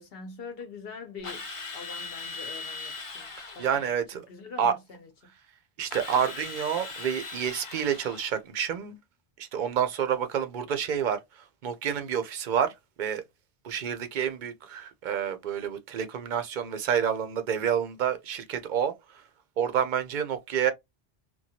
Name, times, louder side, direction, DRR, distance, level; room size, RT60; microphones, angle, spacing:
voice 1, 0.0-1.5 1.7-3.3 3.5-5.3, left 4 dB, 65° left, 0.9 m, -44 dB
Drill, 1.2-3.9 5.9-8.4, left 3 dB, 35° left, 0.6 m, -39 dB
voice 2, 3.6-4.2 4.6-4.7 5.8-9.0 9.4-13.2 13.6-19.2 19.6-20.7, right 8 dB, 55° right, 0.6 m, -29 dB
2.9 x 2.3 x 2.7 m
omnidirectional pair, 1.1 m